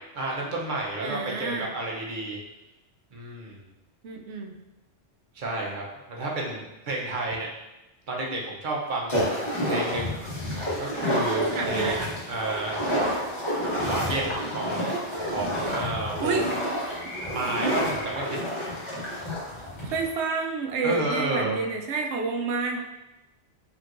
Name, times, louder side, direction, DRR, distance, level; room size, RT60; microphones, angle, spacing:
voice 1, 0.2-2.4 3.1-3.6 5.3-7.5 8.1-10.1 10.8-12.8 13.8-16.5 17.3-18.4 20.8-21.6, right 2 dB, 50° right, -2 dB, 0.9 m, -31 dB
voice 2, 1.0-1.7 4.0-4.6 11.5-12.1 16.2-16.5 19.8-22.8, right 4 dB, 80° right, 2 dB, 0.9 m, -29 dB
sound 1, 9.1-20.1, equal, 30° left, 1.1 m, -29 dB
4.5 x 3.6 x 2.5 m, 1.0 s
omnidirectional pair, 1.1 m